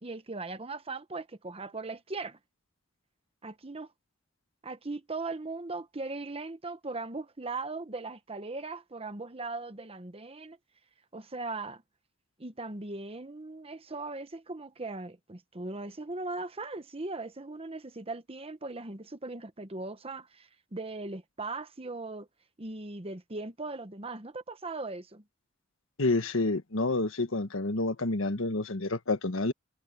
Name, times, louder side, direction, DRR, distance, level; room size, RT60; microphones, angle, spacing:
voice 1, 0.0-2.4 3.4-3.9 4.6-10.6 11.1-11.8 12.4-22.3 22.6-25.2, right 3 dB, 30° right, 1.1 m, -39 dB
voice 2, 26.0-29.5, left 2 dB, 90° left, 1.4 m, -29 dB
head